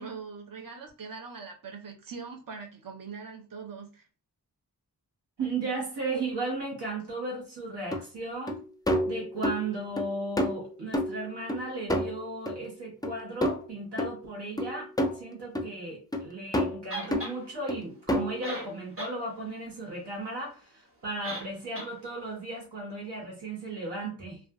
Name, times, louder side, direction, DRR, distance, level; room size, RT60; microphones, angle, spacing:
voice 1, 0.0-4.1, right 5 dB, 55° right, 0.7 m, -42 dB
voice 2, 5.4-8.6 9.0-14.9 15.1-24.4, right 2 dB, 85° right, 1.1 m, -35 dB
sound 1, 7.9-8.0 8.5-8.6 8.9-9.6 10.0-10.1 10.4-11.6 11.9-12.6 13.0-13.1 13.4-13.7 14.0-14.1 14.6-15.2 15.5-15.7 16.1-16.2 16.5-16.8 17.1-17.3 17.7-17.8 18.1-18.4, equal, 10° left, 0.3 m, -28 dB
sound 2, 16.9-17.4 18.1-18.2 18.4-19.2 19.5-19.6 21.2-21.5 21.7-21.9, right 1 dB, 35° right, 0.9 m, -37 dB
2.5 x 2.3 x 2.2 m
wide cardioid pair, 55°, 40 cm